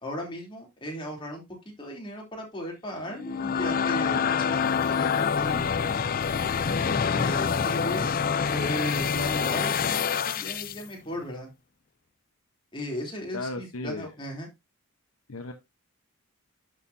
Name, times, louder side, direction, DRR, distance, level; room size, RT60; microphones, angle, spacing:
voice 1, 0.0-1.4 1.8-5.7 6.6-8.2 8.5-11.5 12.7-14.5, equal, 20° left, 0 dB, 3.3 m, -36 dB
sound 1, 3.1-10.8, left 6 dB, 40° left, 0.4 m, -26 dB
voice 2, 13.3-14.1 15.3-15.5, left 2 dB, 70° left, 5 dB, 1.0 m, -35 dB
11.0 x 6.7 x 2.7 m, 0.21 s
head